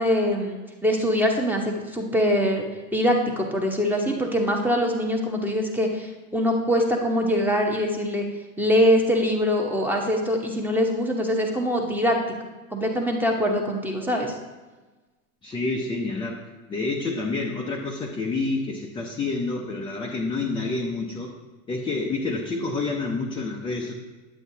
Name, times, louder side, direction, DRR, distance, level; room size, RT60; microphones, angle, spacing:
voice 1, 0.0-2.6 2.9-8.2 8.6-12.2 12.7-14.3, equal, 5° right, 1 dB, 0.8 m, -23 dB
voice 2, 15.4-21.3 21.7-23.9, left 3 dB, 10° left, -1 dB, 0.4 m, -28 dB
9.2 x 8.3 x 2.7 m, 1.2 s
supercardioid pair, 125°, 43 cm